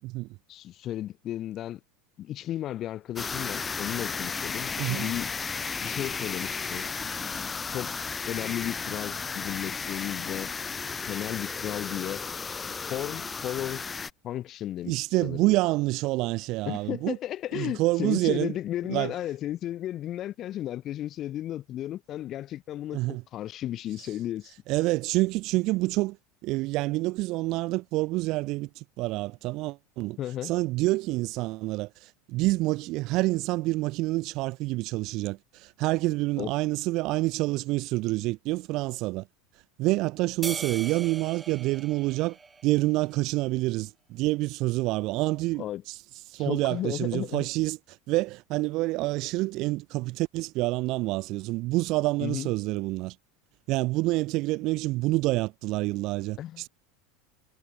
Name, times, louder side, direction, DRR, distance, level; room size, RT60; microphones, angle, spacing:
voice 1, 0.5-1.8 2.2-5.3 5.8-6.9 7.2-7.9 8.3-10.5 11.1-12.2 12.9-13.9 14.2-14.9 15.2-15.4 16.7-24.5 30.2-30.5 36.4-36.5 45.6-45.8 46.4-47.5 52.2-52.5 56.4-56.6, left 12 dB, 40° left, 0.9 m, -34 dB
sound 1, 3.1-14.1, left 5 dB, 20° left, 1.8 m, -34 dB
voice 2, 4.8-5.1 14.8-17.2 17.5-18.6 18.9-19.1 22.9-23.2 24.7-26.2 26.4-39.3 39.8-42.4 42.6-46.0 46.3-53.2 53.7-56.7, right 20 dB, 55° right, 0.8 m, -27 dB
sound 2, 40.4-43.0, right 4 dB, 15° right, 0.7 m, -39 dB
supercardioid pair, 125°, 0 cm